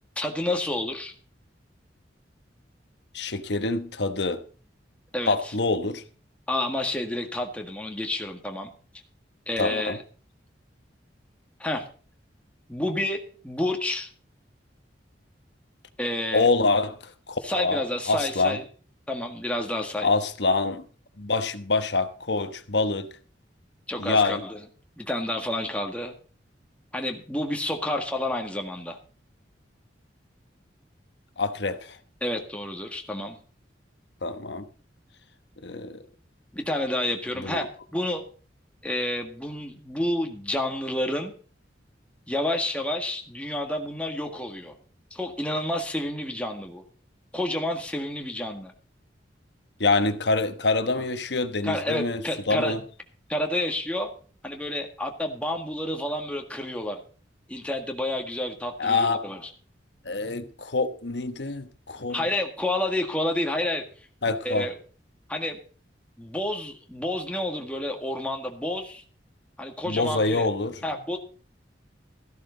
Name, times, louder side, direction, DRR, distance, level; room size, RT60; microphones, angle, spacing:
voice 1, 0.2-1.1 5.1-5.5 6.5-8.7 9.5-10.0 11.6-11.9 12.7-14.1 16.0-16.5 17.4-18.6 19.1-20.1 23.9-24.6 25.0-26.2 26.9-29.0 32.2-33.4 36.5-38.2 38.8-41.3 42.3-44.7 45.1-46.8 47.3-48.7 51.6-52.8 53.3-54.1 54.4-57.0 57.5-59.5 62.1-63.9 64.5-64.7 65.3-65.6 66.2-69.0 69.6-70.5 70.8-71.2, left 1 dB, 5° left, 1.7 m, -29 dB
voice 2, 3.1-4.4 5.3-6.0 9.6-10.0 16.3-16.9 17.3-17.8 18.1-18.6 20.0-20.8 21.2-23.1 24.0-24.4 31.4-32.0 34.2-34.7 35.6-36.0 37.4-37.6 49.8-52.2 52.5-52.8 58.8-59.2 60.0-62.3 64.2-64.7 69.8-70.7, left 3 dB, 65° left, 1.2 m, -25 dB
14.0 x 12.0 x 4.0 m
head